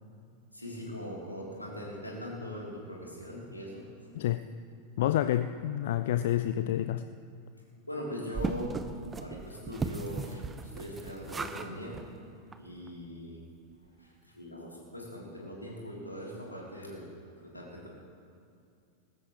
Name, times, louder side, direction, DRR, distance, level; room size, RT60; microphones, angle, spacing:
voice 1, 0.5-3.8 7.9-8.7 9.2-10.4 10.7-12.0 12.6-13.4 14.0-17.0 17.4-17.9, equal, 85° left, -4 dB, 3.4 m, -41 dB
voice 2, 4.1-4.5 5.0-7.1, left 12 dB, 55° left, 12 dB, 0.4 m, -28 dB
sound 1, 8.3-11.7 11.9-12.1 12.5-12.6 12.9-13.0, right 4 dB, 15° right, 0.7 m, -37 dB
20.0 x 15.0 x 3.2 m, 2.4 s
figure-of-eight pair, 90°, 0 cm